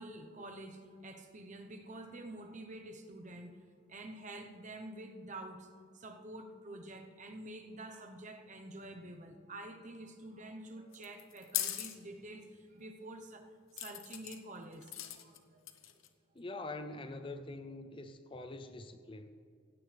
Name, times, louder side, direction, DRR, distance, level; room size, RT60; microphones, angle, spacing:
voice 1, 0.0-5.7 5.9-15.7, right 1 dB, 35° right, 5 dB, 1.0 m, -48 dB
sound 1, 10.9-12.0 13.8-14.4 14.8-15.4 15.7-16.1, left 12 dB, 70° left, 1.0 m, -38 dB
voice 2, 16.3-19.3, left 2 dB, 25° left, 8 dB, 0.5 m, -44 dB
17.0 x 16.5 x 3.4 m, 2.3 s
head